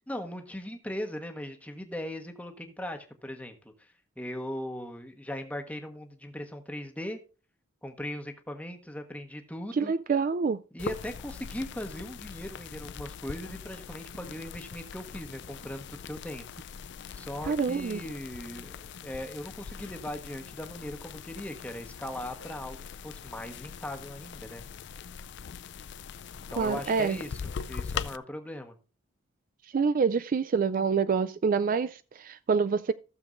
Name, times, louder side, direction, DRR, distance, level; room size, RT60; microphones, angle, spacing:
voice 1, 0.1-7.2 7.8-9.9 10.7-16.5 17.1-24.6 26.5-27.4 27.7-28.7, left 1 dB, 5° left, 1.2 m, -39 dB
voice 2, 9.7-10.6 17.4-18.0 26.6-27.2 29.7-32.9, right 5 dB, 45° right, 0.3 m, -26 dB
sound 1, 10.8-28.2, left 6 dB, 60° left, 0.4 m, -41 dB
15.5 x 7.0 x 2.5 m
head